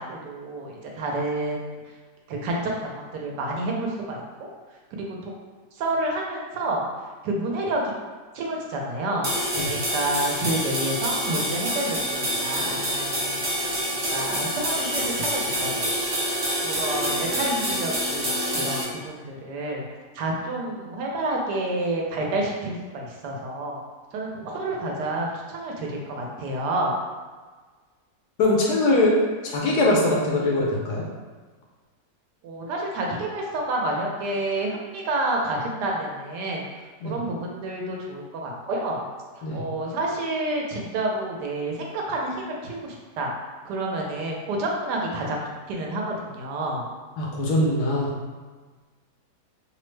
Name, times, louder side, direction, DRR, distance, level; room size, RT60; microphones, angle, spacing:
voice 1, 0.0-1.7 2.3-4.5 4.9-5.3 5.7-6.8 7.2-7.8 8.3-15.8 16.6-19.8 20.1-23.8 24.1-26.9 32.4-36.7 37.0-39.0 39.4-43.3 43.6-45.4 45.7-46.8, right 2 dB, 80° right, -1 dB, 1.2 m, -29 dB
sound 1, 9.2-18.8, equal, 45° right, 0.9 m, -27 dB
voice 2, 28.4-29.1 29.4-31.0 37.0-37.2 39.4-39.6 47.2-48.1, left 2 dB, 75° left, -3 dB, 1.2 m, -22 dB
3.1 x 2.0 x 3.1 m, 1.4 s
omnidirectional pair, 1.8 m